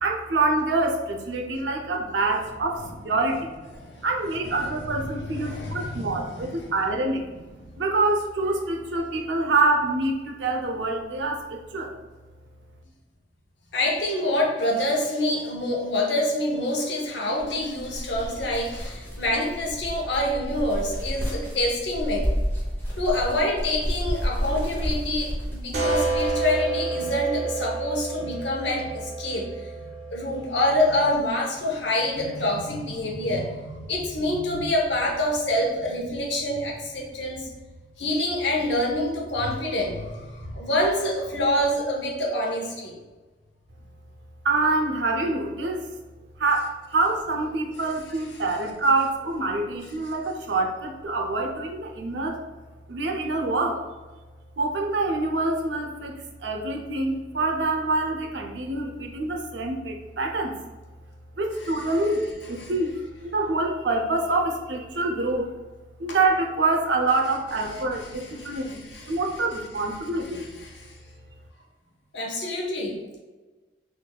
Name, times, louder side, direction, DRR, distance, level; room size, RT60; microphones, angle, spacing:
voice 1, 0.0-3.5 4.0-11.9 44.4-45.9 46.4-52.4 52.9-53.8 54.6-60.6 61.4-62.9 63.2-65.5 66.0-70.5, right 2 dB, 85° right, 2 dB, 0.6 m, -26 dB
voice 2, 5.3-6.7 13.7-22.3 23.0-29.7 30.1-37.5 38.0-42.9 61.6-61.8 62.6-62.7 66.1-66.2 67.7-67.8 68.1-69.2 70.3-70.9 72.1-73.0, left 1 dB, 75° left, -1 dB, 0.8 m, -26 dB
sound 1, 17.4-26.6, equal, 10° left, 0.8 m, -31 dB
sound 2, 25.7-31.2, right 3 dB, 40° right, 0.7 m, -30 dB
4.4 x 2.5 x 2.3 m, 1.2 s
head